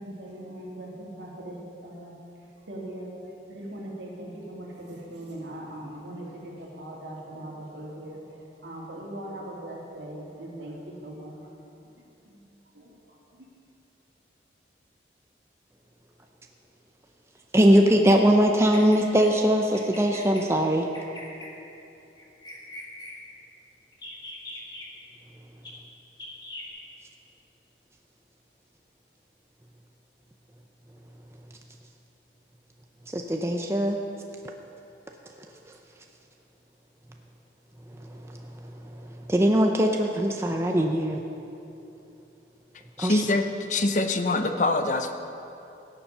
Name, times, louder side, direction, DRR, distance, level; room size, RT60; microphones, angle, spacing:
voice 1, 0.0-11.5 12.0-13.5, right 1 dB, 80° right, -3 dB, 2.5 m, -40 dB
voice 2, 17.5-20.9 33.1-34.0 38.1-38.4 38.6-41.2 43.0-43.2, equal, 15° right, 2 dB, 0.5 m, -21 dB
Bird vocalization bird call bird song, 18.5-19.3 19.7-20.4 20.9-21.5 22.2-23.1 23.9-24.9 25.6-25.7 26.2-26.7, left 1 dB, 25° left, 1.5 m, -42 dB
voice 3, 43.0-43.4 43.7-45.1, left 2 dB, 40° left, 7 dB, 0.6 m, -24 dB
17.5 x 7.0 x 5.5 m, 2.9 s
head